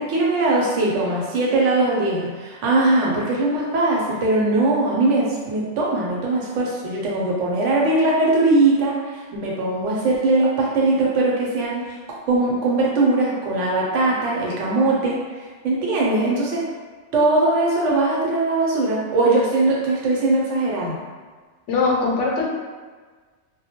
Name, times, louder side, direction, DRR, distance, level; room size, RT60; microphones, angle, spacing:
voice 1, 0.0-11.9 12.3-15.2 15.6-16.6 17.1-21.0, right 2 dB, 85° right, -3 dB, 1.0 m, -20 dB
voice 2, 21.7-22.5, left 3 dB, 80° left, -2 dB, 0.9 m, -21 dB
2.2 x 2.1 x 2.8 m, 1.4 s
omnidirectional pair, 1.2 m